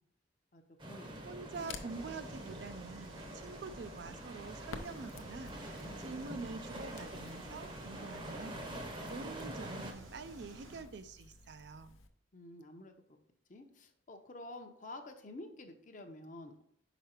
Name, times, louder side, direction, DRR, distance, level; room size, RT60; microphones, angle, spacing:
voice 1, 0.5-1.5 12.3-12.9 13.5-16.6, left 2 dB, 40° left, 6 dB, 0.7 m, -50 dB
sound 1, 0.8-9.9, right 1 dB, 25° right, 0.7 m, -46 dB
Crackle, 1.1-12.1, left 3 dB, 90° left, 0.7 m, -54 dB
voice 2, 1.2-8.6 9.1-12.0, right 4 dB, 55° right, 12 dB, 0.4 m, -46 dB
sound 2, 1.9-10.8, right 2 dB, 80° right, 1.1 m, -54 dB
5.6 x 5.1 x 4.3 m, 0.69 s
head